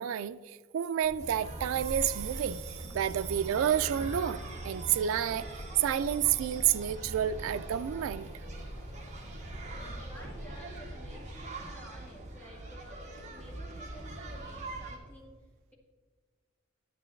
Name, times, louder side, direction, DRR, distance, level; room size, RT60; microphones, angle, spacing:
voice 1, 0.0-5.5 5.8-8.3, right 9 dB, 70° right, 0.3 m, -30 dB
sound 1, 1.0-11.4, equal, 45° left, 2.0 m, -45 dB
sound 2, 1.2-15.0, right 2 dB, 35° right, 1.3 m, -43 dB
voice 2, 9.6-15.4, equal, 10° left, 2.0 m, -53 dB
10.0 x 9.6 x 3.2 m
head